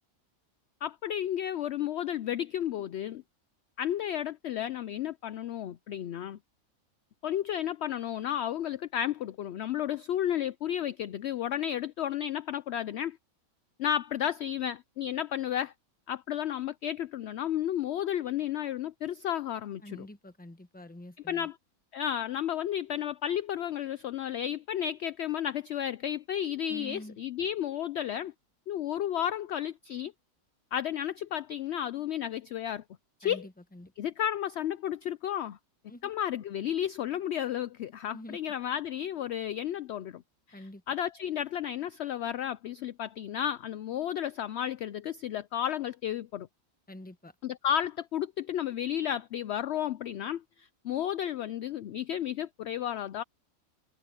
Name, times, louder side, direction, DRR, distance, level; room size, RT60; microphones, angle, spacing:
voice 1, 0.8-3.2 3.8-6.4 7.2-13.2 13.8-15.7 16.1-20.1 21.3-21.6 21.9-28.3 28.7-30.1 30.7-32.8 33.2-33.5 34.0-35.6 36.0-40.2 40.5-46.5 47.4-53.2, left 10 dB, 65° left, 0.7 m, -32 dB
voice 2, 19.8-21.5 26.7-27.2 33.2-33.9 35.9-36.1 38.1-38.4 40.5-40.8 46.9-47.3, left 1 dB, 5° left, 1.0 m, -46 dB
omnidirectional pair, 1.5 m